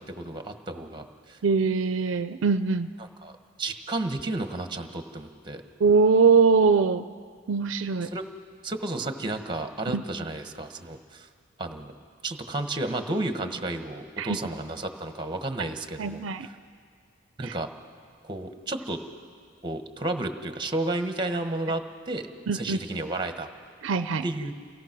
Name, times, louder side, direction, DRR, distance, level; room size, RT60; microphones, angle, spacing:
voice 1, 0.0-1.4 3.2-3.3 3.6-5.6 8.1-8.2 8.6-11.3 11.6-11.9 12.2-16.5 17.4-17.7 18.2-19.0 19.6-21.8 22.1-22.3 22.5-23.5 24.2-24.5, right 2 dB, 25° right, 7 dB, 1.2 m, -32 dB
voice 2, 1.4-2.9 5.8-7.1 7.5-8.1 9.9-10.0 14.2-14.4 16.0-16.5 17.4-17.6 22.5-22.8 23.8-24.2, right 4 dB, 75° right, 11 dB, 0.5 m, -22 dB
29.0 x 17.0 x 6.0 m, 2.1 s
head